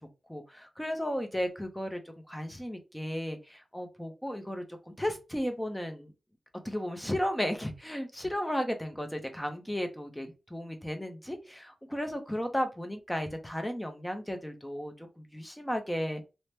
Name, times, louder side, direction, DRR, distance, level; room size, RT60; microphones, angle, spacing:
voice 1, 0.3-2.0 2.3-6.1 6.6-16.2, equal, 5° left, 5 dB, 0.6 m, -34 dB
2.8 x 2.1 x 3.2 m, 0.28 s
wide cardioid pair, 125°, 0 cm